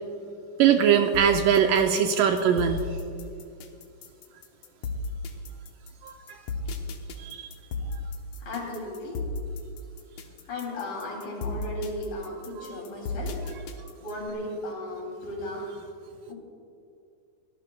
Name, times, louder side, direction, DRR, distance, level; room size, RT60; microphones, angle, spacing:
voice 1, 0.6-2.8 6.0-6.4 7.2-7.5 12.6-12.8, right 8 dB, 80° right, 5 dB, 2.1 m, -22 dB
sound 1, 1.1-14.3, left 2 dB, 80° left, 1.4 m, -35 dB
voice 2, 8.4-9.3 10.5-13.4 14.0-15.7 16.3-16.4, left 1 dB, 65° left, -2 dB, 4.5 m, -35 dB
24.5 x 17.5 x 2.3 m, 2.4 s
omnidirectional pair, 4.2 m